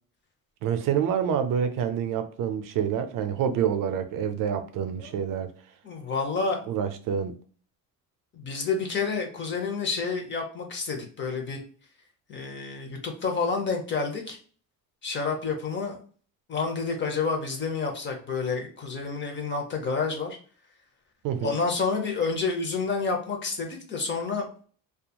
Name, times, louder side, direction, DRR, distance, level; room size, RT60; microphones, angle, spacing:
voice 1, 0.6-5.5 6.7-7.4 21.2-21.5, right 8 dB, 65° right, 0.5 m, -27 dB
voice 2, 5.8-6.6 8.3-11.6 12.3-14.4 15.0-16.0 16.5-20.4 21.4-24.5, left 4 dB, 30° left, 0.6 m, -29 dB
2.8 x 2.3 x 2.2 m
cardioid pair, 140°, 36 cm